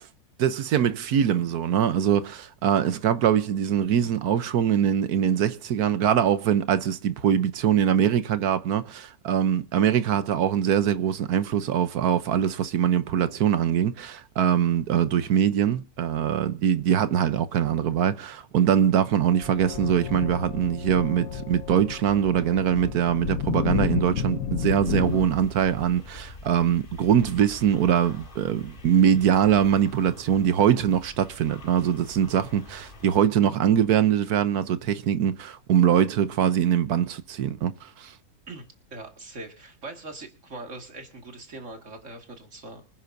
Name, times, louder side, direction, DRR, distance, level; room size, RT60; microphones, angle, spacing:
voice 1, 0.4-38.1, right 9 dB, 75° right, 1.3 m, -23 dB
sound 1, 19.3-25.3, left 7 dB, 60° left, 1.2 m, -31 dB
sound 2, 24.8-33.2, left 2 dB, 35° left, 1.9 m, -45 dB
voice 2, 38.5-42.8, right 2 dB, 50° right, 2.4 m, -41 dB
25.5 x 10.0 x 2.7 m
omnidirectional pair, 1.7 m